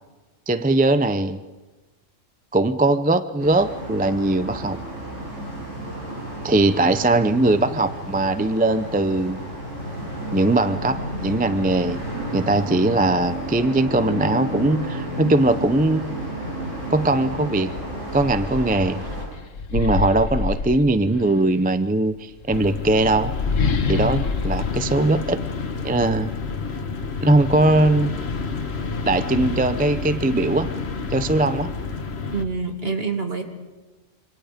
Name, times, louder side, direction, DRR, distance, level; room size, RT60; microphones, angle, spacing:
voice 1, 0.5-1.4 2.5-4.8 6.4-9.4 10.3-12.0 12.3-16.3 16.9-17.7 18.1-19.0 19.7-23.3 23.9-25.4 25.8-26.3 27.2-28.2 29.1-30.7 31.1-31.7, right 2 dB, 10° right, 11 dB, 0.4 m, -20 dB
sound 1, 3.4-19.3, right 1 dB, 70° right, 7.2 m, -32 dB
sound 2, 17.3-17.4 17.7-21.4 22.3-25.9, left 4 dB, 80° left, 1.6 m, -27 dB
sound 3, 22.5-32.4, left 4 dB, 55° left, 1.6 m, -29 dB
voice 2, 32.3-33.4, right 4 dB, 50° right, 3 dB, 2.6 m, -26 dB
26.5 x 25.5 x 5.2 m, 1.2 s
omnidirectional pair, 1.3 m